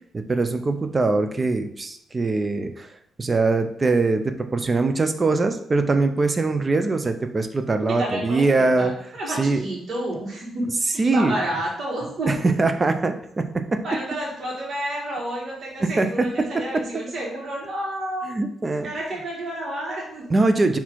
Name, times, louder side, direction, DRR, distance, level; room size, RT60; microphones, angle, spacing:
voice 1, 0.1-2.9 3.2-8.9 9.3-9.6 11.0-11.4 12.3-13.8 15.8-16.1 18.3-18.9 20.3-20.8, right 3 dB, 30° right, 8 dB, 0.5 m, -22 dB
voice 2, 7.9-12.3 13.8-18.4 18.8-20.2, right 1 dB, 55° right, -4 dB, 1.5 m, -30 dB
4.1 x 2.8 x 4.5 m, 0.71 s
cardioid pair, 95°, 0 cm